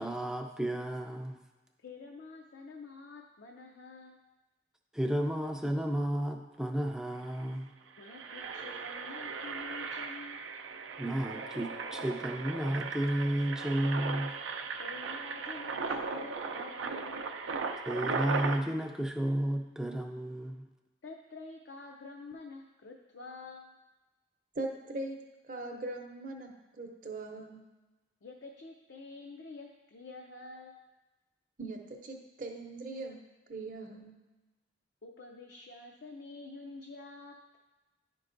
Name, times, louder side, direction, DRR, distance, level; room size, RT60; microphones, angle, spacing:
voice 1, 0.0-1.4 4.9-7.7 11.0-14.3 17.9-20.6, right 1 dB, 5° right, 4 dB, 0.4 m, -32 dB
voice 2, 1.8-4.2 8.0-10.5 14.8-17.3 21.0-23.8 28.2-30.8 35.0-37.4, left 3 dB, 65° left, 1 dB, 0.5 m, -48 dB
Engine, 6.8-6.9 7.2-7.4 7.9-18.6, right 4 dB, 80° right, 0.5 m, -37 dB
voice 3, 24.5-25.2 25.4-27.6 31.6-33.2 33.5-34.2, right 2 dB, 45° right, 2 dB, 0.7 m, -40 dB
10.5 x 4.6 x 2.6 m, 1.1 s
head